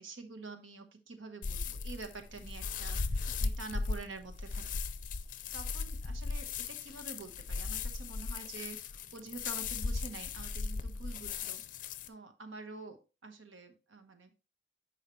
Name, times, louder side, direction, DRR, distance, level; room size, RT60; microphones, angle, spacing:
voice 1, 0.0-4.6 5.5-11.6 12.0-14.4, right 3 dB, 90° right, 7 dB, 1.2 m, -47 dB
sound 1, 1.4-12.1, left 4 dB, 45° left, 0.5 m, -37 dB
10.0 x 4.6 x 3.1 m, 0.31 s
head